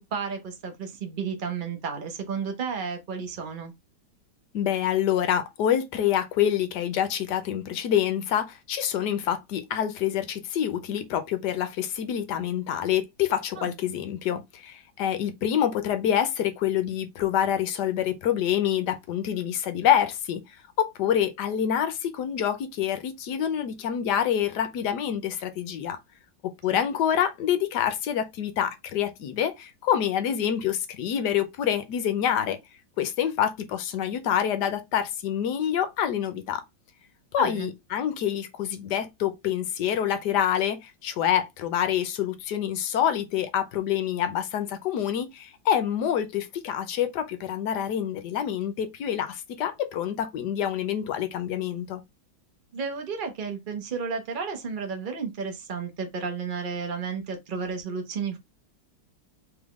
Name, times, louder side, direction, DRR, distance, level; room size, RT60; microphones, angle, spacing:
voice 1, 0.0-3.7 13.6-13.7 37.4-37.7 52.7-58.4, right 5 dB, 75° right, 0.4 m, -32 dB
voice 2, 4.5-20.4 20.8-26.0 26.6-32.6 33.0-36.6 37.3-52.0, left 10 dB, 65° left, 1.1 m, -26 dB
3.6 x 3.5 x 3.5 m
omnidirectional pair, 2.2 m